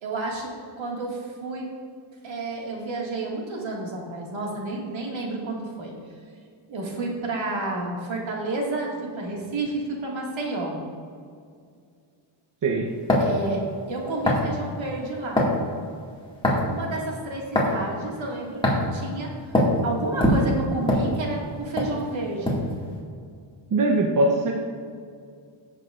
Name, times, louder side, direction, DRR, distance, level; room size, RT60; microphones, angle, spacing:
voice 1, 0.0-1.7 2.2-5.9 6.7-10.8 13.2-15.5 16.4-18.6 18.9-19.3 19.8-22.7, right 2 dB, 65° right, -1 dB, 2.1 m, -30 dB
voice 2, 12.6-12.9 23.7-24.5, right 2 dB, 40° right, 1 dB, 0.8 m, -21 dB
sound 1, 13.1-13.4 14.2-14.5 15.4-15.6 16.4-16.7 17.5-17.7 18.6-18.9 19.5-19.8 20.2-21.5 21.8-21.9 22.4-22.7, left 1 dB, 10° left, 2.0 m, -21 dB
15.5 x 6.6 x 2.5 m, 2.2 s
cardioid pair, 105°, 50 cm